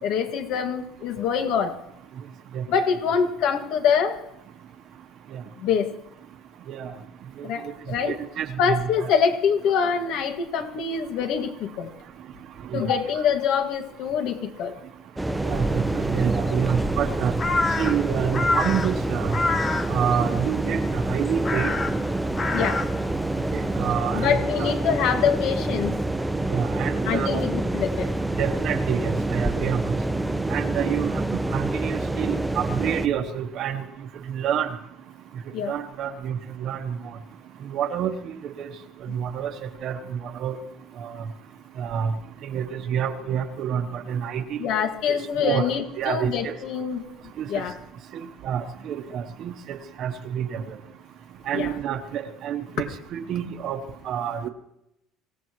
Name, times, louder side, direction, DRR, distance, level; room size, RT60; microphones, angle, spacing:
voice 1, 0.0-1.7 2.7-4.2 5.6-5.9 7.4-8.2 8.6-11.9 12.7-14.7 22.5-22.8 24.1-26.0 27.1-28.1 35.5-35.7 39.1-39.2 44.6-47.0 47.5-47.7 51.5-51.8, left 7 dB, 65° left, 5 dB, 2.0 m, -25 dB
voice 2, 8.0-9.1 12.7-12.9 15.4-17.3 17.8-19.4 19.9-21.7 23.5-24.7 26.5-27.4 28.4-30.0 30.5-31.1 31.5-33.8 34.3-34.7 35.7-36.9 37.7-38.1 38.4-38.7 39.1-40.6 41.0-41.1 41.8-42.1 42.4-44.7 45.1-45.2 45.4-45.7 46.0-46.5 47.4-47.5 48.4-50.8 51.5-54.5, right 8 dB, 50° right, 7 dB, 1.0 m, -28 dB
sound 1, 15.2-33.1, right 2 dB, 5° right, 0.7 m, -27 dB
Crow, 15.4-23.9, left 3 dB, 25° left, 0.7 m, -30 dB
25.5 x 17.0 x 3.1 m, 0.84 s
cardioid pair, 140°, 0 cm